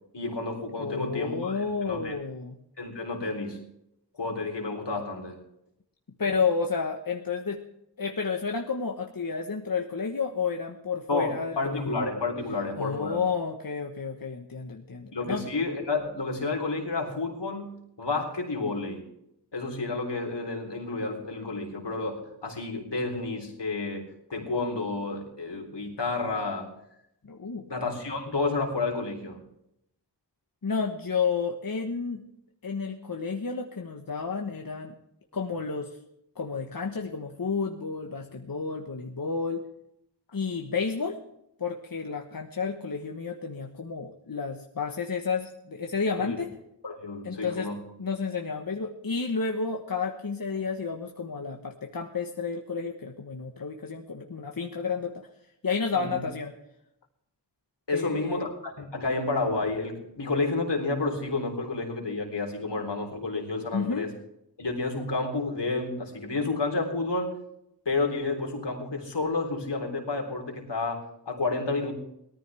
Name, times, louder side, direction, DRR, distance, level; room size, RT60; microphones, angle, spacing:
voice 1, 0.1-2.1 2.8-3.6 4.2-5.4 11.1-13.2 15.1-19.0 19.5-26.7 27.7-29.4 46.2-46.4 46.8-47.8 55.9-56.2 57.9-64.1 64.6-67.3 67.9-71.9, left 3 dB, 80° left, 1 dB, 3.8 m, -30 dB
voice 2, 0.8-2.6 6.2-7.6 8.0-11.8 12.8-15.4 27.2-27.6 30.6-32.2 32.6-34.9 35.3-36.0 36.4-39.6 40.3-41.2 41.6-46.5 47.2-47.7 48.0-55.3 55.6-56.5 57.9-58.4 63.7-64.1, left 5 dB, 55° left, 2 dB, 1.4 m, -31 dB
18.5 x 14.0 x 3.5 m, 0.78 s
wide cardioid pair, 60°, 41 cm